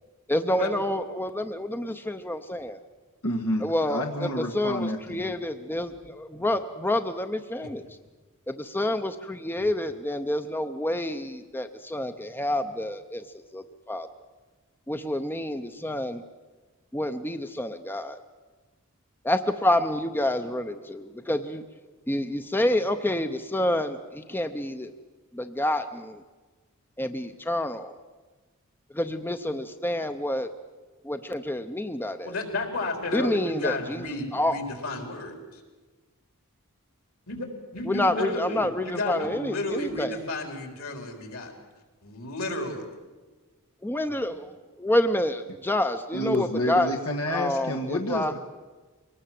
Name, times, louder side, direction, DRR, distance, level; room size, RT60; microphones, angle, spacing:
voice 1, 0.3-2.8 3.6-7.9 8.5-13.2 13.5-14.1 14.9-16.2 16.9-18.2 19.2-21.6 22.1-24.9 25.3-26.2 27.0-27.9 28.9-30.5 31.0-32.3 33.1-34.6 37.8-40.2 43.8-47.0 47.3-48.3, left 1 dB, 10° left, 8 dB, 0.6 m, -28 dB
voice 2, 3.2-5.3 46.1-48.4, equal, 85° left, 1 dB, 1.6 m, -29 dB
voice 3, 32.2-35.6 37.3-41.5 42.0-42.8, left 2 dB, 70° left, 3 dB, 4.3 m, -32 dB
23.0 x 18.5 x 7.6 m, 1.3 s
head